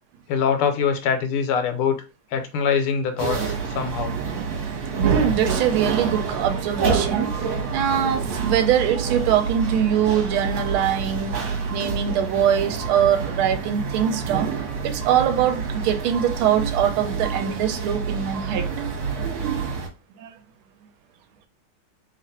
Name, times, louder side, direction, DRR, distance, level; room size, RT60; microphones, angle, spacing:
voice 1, 0.3-2.0 2.3-4.2, left 6 dB, 85° left, 1.6 m, -23 dB
sound 1, 3.2-19.9, right 5 dB, 50° right, 1.4 m, -27 dB
voice 2, 5.0-7.3 7.7-11.4 11.7-14.5 14.8-18.7 20.2-20.3, right 9 dB, 80° right, 1.4 m, -22 dB
3.4 x 2.5 x 4.1 m
omnidirectional pair, 2.4 m